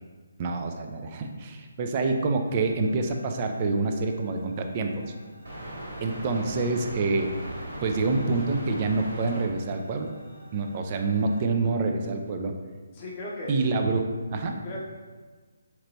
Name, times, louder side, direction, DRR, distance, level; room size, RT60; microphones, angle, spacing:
voice 1, 0.4-5.0 6.0-7.3 7.8-10.1 10.5-12.5 13.5-14.8, right 3 dB, 30° right, 4 dB, 0.4 m, -27 dB
sound 1, 2.4-11.4, right 1 dB, 60° right, 1.5 m, -41 dB
voice 2, 13.0-13.7 14.6-14.8, left 2 dB, 30° left, -4 dB, 0.7 m, -36 dB
4.0 x 2.9 x 2.7 m, 1.4 s
figure-of-eight pair, 145°, 0 cm